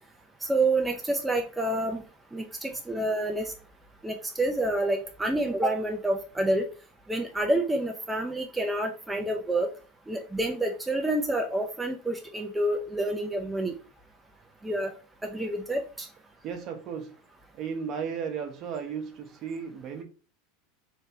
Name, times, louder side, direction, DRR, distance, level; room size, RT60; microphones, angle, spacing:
voice 1, 0.5-2.0 2.3-3.5 4.0-6.7 7.1-9.7 10.1-13.7 14.6-14.9 15.2-16.1, right 1 dB, 10° right, 0.4 m, -28 dB
voice 2, 16.4-17.1 17.6-20.0, right 6 dB, 45° right, 0.7 m, -35 dB
3.2 x 2.1 x 2.7 m
supercardioid pair, 110°, 0 cm